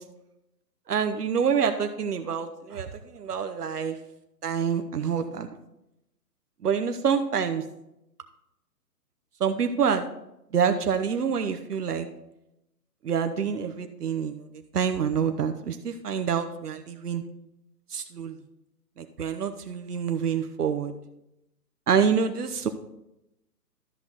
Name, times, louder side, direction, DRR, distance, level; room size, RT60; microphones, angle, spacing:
voice 1, 0.9-4.0 4.4-5.5 6.6-7.6 9.4-10.1 10.5-12.1 13.0-14.5 14.7-17.2 17.9-18.4 19.0-20.9 21.9-22.7, right 7 dB, 70° right, 7 dB, 1.0 m, -27 dB
13.0 x 5.9 x 3.9 m, 0.86 s
figure-of-eight pair, 140°, 48 cm